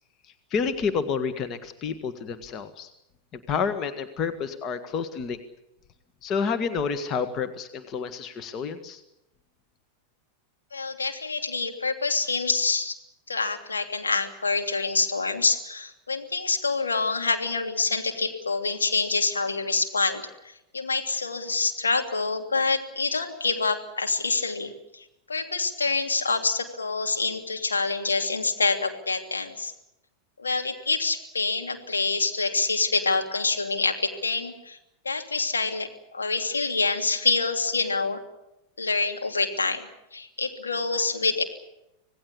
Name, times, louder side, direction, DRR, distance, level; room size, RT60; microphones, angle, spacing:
voice 1, 0.5-2.9 3.3-5.4 6.2-9.0, left 6 dB, 30° left, 9 dB, 1.8 m, -29 dB
voice 2, 10.7-12.9 13.3-29.7 30.4-34.8 35.0-35.9 36.1-38.2 38.8-39.9 40.1-41.4, left 4 dB, 75° left, 5 dB, 3.0 m, -26 dB
26.5 x 18.5 x 8.5 m, 0.88 s
figure-of-eight pair, 90°, 0 cm